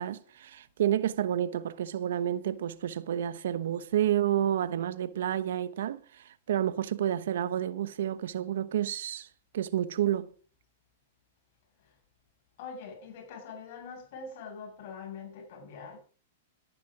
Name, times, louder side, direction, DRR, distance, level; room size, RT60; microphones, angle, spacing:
voice 1, 0.0-9.3 9.5-10.3, right 11 dB, 75° right, 1.0 m, -30 dB
voice 2, 12.6-16.0, left 5 dB, 55° left, 6.6 m, -43 dB
14.5 x 10.0 x 5.0 m
hypercardioid pair, 135°, 0 cm